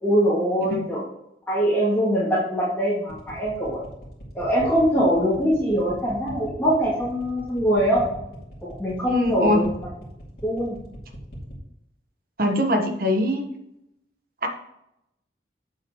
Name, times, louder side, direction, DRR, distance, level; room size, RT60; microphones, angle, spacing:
voice 1, 0.0-1.0 1.5-3.8 4.3-8.1 8.6-9.9 10.4-10.8, equal, 10° left, -10 dB, 2.5 m, -23 dB
sound 1, 3.1-11.6, equal, 60° left, 2.6 m, -40 dB
voice 2, 9.1-9.6 12.4-13.4 14.4-14.5, equal, 55° right, 4 dB, 1.3 m, -22 dB
8.7 x 7.8 x 3.1 m, 0.83 s
head